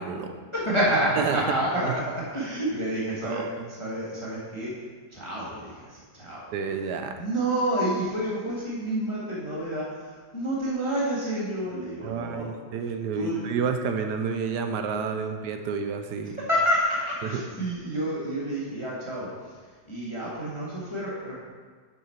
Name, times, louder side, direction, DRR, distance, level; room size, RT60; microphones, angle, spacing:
voice 1, 0.0-0.3 1.2-1.4 3.2-3.5 6.5-7.1 12.0-16.4 17.3-17.4, right 5 dB, 75° right, 6 dB, 1.1 m, -30 dB
voice 2, 0.5-4.8 5.1-6.5 7.1-12.5 13.1-13.5 16.3-21.3, right 1 dB, 20° left, -6 dB, 1.2 m, -29 dB
6.7 x 6.2 x 4.4 m, 1.5 s
omnidirectional pair, 1.9 m